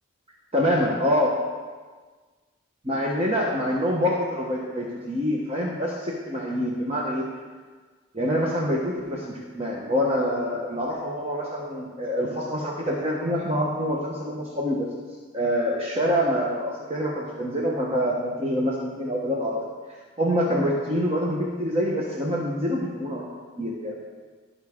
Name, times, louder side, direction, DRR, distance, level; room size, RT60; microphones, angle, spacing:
voice 1, 0.5-1.3 2.8-7.3 8.1-14.9 15.3-19.6 20.2-23.2 23.6-24.0, equal, 30° right, -3 dB, 1.1 m, -26 dB
16.0 x 5.6 x 3.6 m, 1.4 s
head